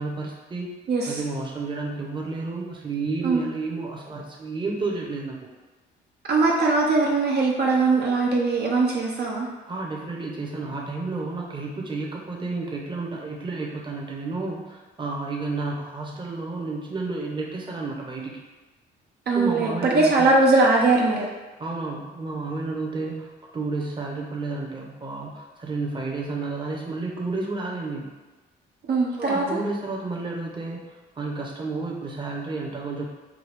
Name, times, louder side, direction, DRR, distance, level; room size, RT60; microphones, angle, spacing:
voice 1, 0.0-0.7 1.1-5.4 9.7-18.3 19.3-20.3 21.6-28.1 29.2-30.8 31.2-33.0, right 3 dB, 25° right, -2 dB, 0.8 m, -31 dB
voice 2, 0.9-1.2 3.2-3.4 6.3-9.5 19.3-21.3 28.8-29.4, right 3 dB, 55° right, -2 dB, 0.6 m, -21 dB
4.8 x 2.3 x 3.4 m, 1.2 s
cardioid pair, 90°, 20 cm